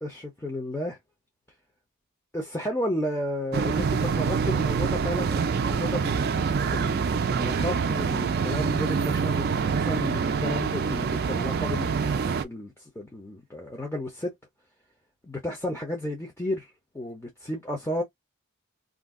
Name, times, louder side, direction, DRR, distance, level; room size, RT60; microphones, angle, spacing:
voice 1, 0.0-1.0 2.3-12.2 12.4-14.3 15.2-16.7 16.9-18.0, left 1 dB, 10° left, 0.6 m, -33 dB
sound 1, 3.5-12.4, right 5 dB, 45° right, 0.3 m, -26 dB
2.5 x 2.3 x 3.5 m
head